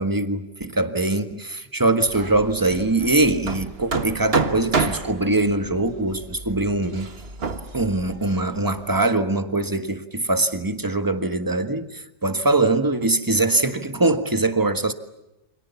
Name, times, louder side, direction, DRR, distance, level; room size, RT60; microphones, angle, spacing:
voice 1, 0.0-7.1 7.7-14.9, right 2 dB, 15° right, 1.6 m, -22 dB
Hammer, 2.1-9.0, right 4 dB, 55° right, 1.7 m, -30 dB
29.0 x 26.5 x 7.1 m
omnidirectional pair, 1.2 m